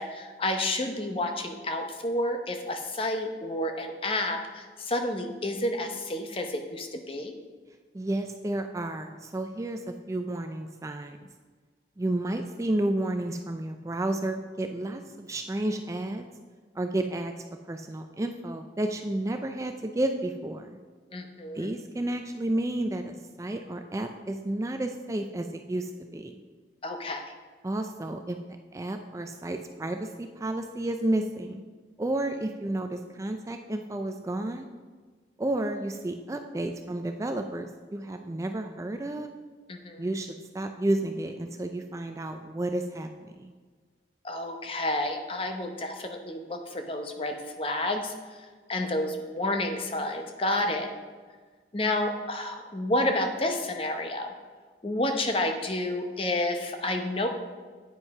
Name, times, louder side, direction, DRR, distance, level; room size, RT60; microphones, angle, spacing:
voice 1, 0.0-7.4 21.1-21.7 26.8-27.2 39.7-40.0 44.2-50.9 51.7-54.3 54.8-57.3, left 1 dB, 30° left, 5 dB, 0.8 m, -30 dB
voice 2, 7.9-11.2 12.0-16.2 16.7-20.8 21.5-26.3 27.6-28.4 28.7-31.6 32.0-34.7 35.4-39.3 40.0-43.5, right 1 dB, 15° right, 6 dB, 0.3 m, -31 dB
9.2 x 5.3 x 4.7 m, 1.5 s
head